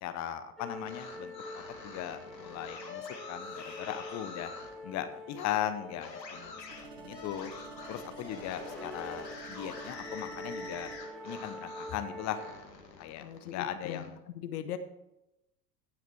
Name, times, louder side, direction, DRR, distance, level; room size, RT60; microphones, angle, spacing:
voice 1, 0.0-4.5 4.8-7.5 7.9-10.9 11.2-12.4 13.0-14.1, left 11 dB, 35° left, 9 dB, 0.9 m, -38 dB
sound 1, 0.6-12.5, equal, ahead, 2.1 m, -46 dB
sound 2, 0.7-4.7 5.3-5.6 6.0-12.0 12.3-14.1, left 4 dB, 80° left, 1.8 m, -46 dB
sound 3, 6.7-11.0, right 4 dB, 65° right, 2.0 m, -50 dB
voice 2, 13.2-14.8, left 10 dB, 65° left, 10 dB, 1.0 m, -40 dB
16.5 x 6.0 x 4.5 m, 0.92 s
figure-of-eight pair, 75°, 49 cm